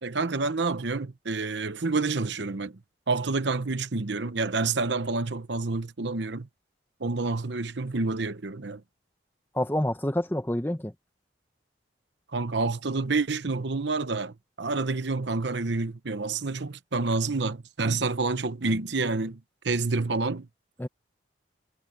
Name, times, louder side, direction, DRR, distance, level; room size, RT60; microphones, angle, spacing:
voice 1, 0.0-2.8 3.1-6.5 7.0-8.8 12.3-19.4 19.6-20.5, right 3 dB, 65° right, 0.9 m, -28 dB
voice 2, 9.5-10.9 20.8-20.9, left 1 dB, 10° left, 1.1 m, -27 dB
head